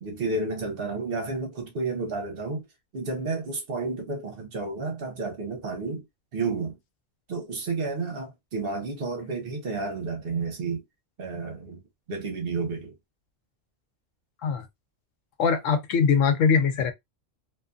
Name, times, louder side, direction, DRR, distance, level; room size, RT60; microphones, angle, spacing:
voice 1, 0.0-2.6 2.9-6.0 6.3-6.8 7.3-10.8 11.2-11.8 12.1-12.9, right 3 dB, 55° right, 1.0 m, -31 dB
voice 2, 15.4-16.9, left 6 dB, 85° left, 1.0 m, -22 dB
2.6 x 2.5 x 2.3 m
omnidirectional pair, 1.3 m